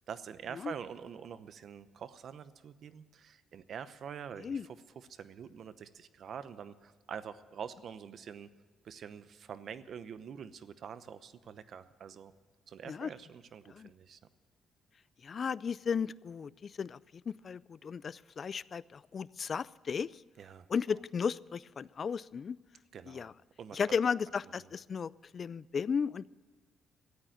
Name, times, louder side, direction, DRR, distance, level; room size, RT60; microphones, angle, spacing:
voice 1, 0.1-8.5 8.8-12.3 12.7-14.2 20.4-20.7 22.9-23.3 23.6-24.0 24.6-24.7, right 7 dB, 60° right, 13 dB, 0.8 m, -46 dB
voice 2, 15.2-17.0 17.3-20.1 20.7-22.6 23.1-23.3 23.7-26.3, left 6 dB, 45° left, 20 dB, 0.4 m, -35 dB
14.5 x 9.0 x 9.1 m, 1.4 s
cardioid pair, 90°, 0 cm